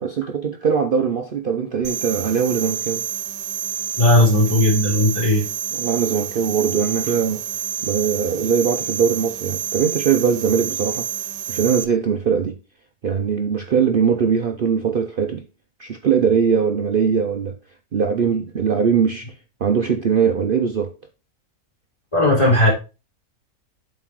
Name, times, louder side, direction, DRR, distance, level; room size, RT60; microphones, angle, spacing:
voice 1, 0.0-3.1 5.8-7.5 7.8-11.1 11.5-12.6 13.0-15.4 15.8-17.6 17.9-19.3 19.6-20.9, right 6 dB, 55° right, 0.6 m, -21 dB
sound 1, 1.8-11.8, right 9 dB, 90° right, 1.2 m, -28 dB
voice 2, 4.0-5.5 22.1-22.7, left 1 dB, 20° left, 3.0 m, -16 dB
7.5 x 4.2 x 4.5 m
omnidirectional pair, 1.6 m